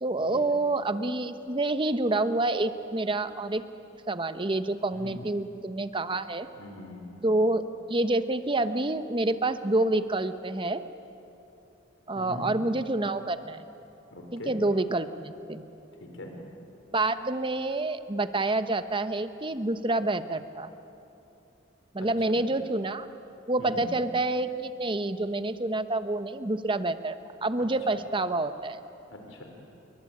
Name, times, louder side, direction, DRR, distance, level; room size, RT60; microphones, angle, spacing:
voice 1, 0.0-3.6 4.1-6.5 7.2-7.6 7.9-10.8 12.1-13.6 14.3-15.7 16.9-20.7 21.9-23.1 23.5-27.2 27.4-28.8, right 2 dB, 25° right, 11 dB, 1.0 m, -28 dB
voice 2, 6.6-7.2 12.2-12.5 14.1-14.5 16.0-16.3 22.0-22.4 23.6-23.9 27.6-27.7 29.1-29.4, left 1 dB, 85° left, 2 dB, 4.5 m, -42 dB
28.5 x 23.0 x 8.9 m, 2.9 s
head